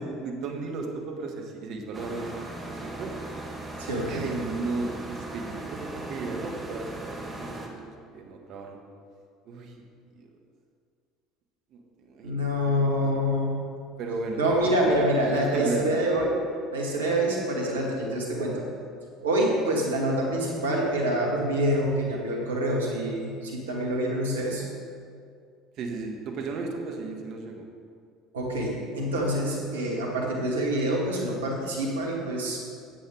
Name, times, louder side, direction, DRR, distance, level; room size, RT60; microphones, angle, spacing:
voice 1, 0.0-2.3 2.7-3.1 4.1-8.8 9.5-9.8 10.2-10.3 11.7-12.8 14.0-14.6 14.8-15.1 15.5-16.0 25.8-27.6, right 3 dB, 55° right, 2 dB, 1.6 m, -35 dB
sound 1, 1.9-7.7, right 2 dB, 15° right, 1.9 m, -38 dB
voice 2, 3.8-4.3 12.2-13.5 14.4-16.4 16.7-18.6 19.2-24.6 28.3-32.6, right 1 dB, 85° right, -2 dB, 2.1 m, -26 dB
10.5 x 8.1 x 4.9 m, 2.3 s
hypercardioid pair, 65°, 0 cm